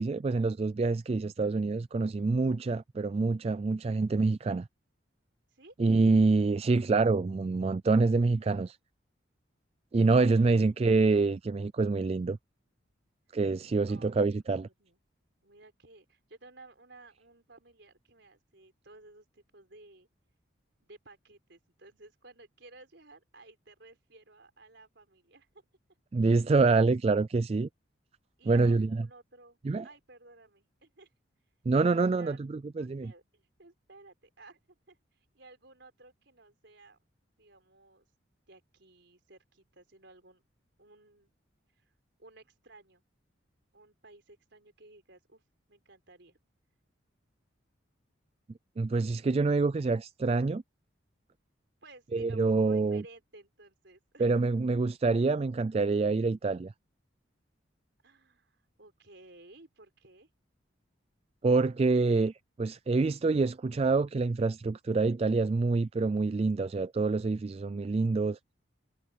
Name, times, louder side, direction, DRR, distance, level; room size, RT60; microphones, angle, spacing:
voice 1, 0.0-4.7 5.8-8.8 9.9-12.4 13.3-14.7 26.1-27.7 28.5-29.0 29.6-29.9 31.7-33.1 48.8-50.6 52.1-53.0 54.2-56.7 61.4-62.3 62.6-68.4, right 3 dB, 30° right, 0.3 m, -26 dB
voice 2, 10.3-11.0 13.9-15.0 15.4-20.1 20.8-25.5 28.4-31.1 32.1-37.0 37.4-38.1 38.5-40.4 40.8-41.3 41.8-41.9 42.2-43.0 43.7-45.4 45.7-46.4 51.8-54.3 58.0-60.3, right 2 dB, 65° right, 4.7 m, -56 dB
head